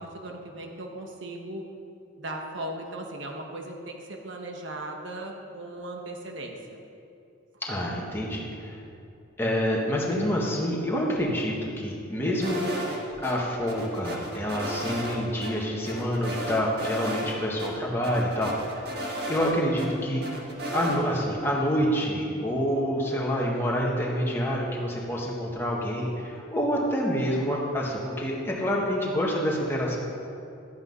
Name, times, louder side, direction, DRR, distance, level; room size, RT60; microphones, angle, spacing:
voice 1, 0.0-1.7 2.2-6.8, right 1 dB, 75° right, 2 dB, 1.2 m, -37 dB
voice 2, 7.6-8.8 9.4-12.7 13.2-18.9 19.3-20.2 20.7-30.0, equal, 10° left, -3 dB, 1.7 m, -27 dB
sound 1, 12.4-13.3 13.7-15.2 15.4-15.5 15.9-17.3 17.6-17.7 18.0-19.9 20.2-21.0, equal, 55° right, 1.7 m, -34 dB
12.0 x 8.8 x 5.5 m, 2.6 s
head